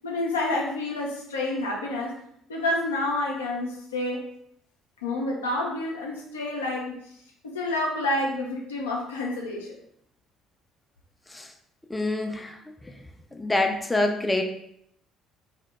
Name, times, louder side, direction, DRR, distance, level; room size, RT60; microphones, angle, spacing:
voice 1, 0.0-2.2 2.5-4.2 5.0-7.0 7.4-9.7, left 2 dB, 85° left, -2 dB, 0.4 m, -28 dB
voice 2, 11.9-12.6 13.3-14.4, left 2 dB, 15° left, 4 dB, 0.3 m, -26 dB
2.1 x 2.0 x 3.1 m, 0.72 s
hypercardioid pair, 55°, 0 cm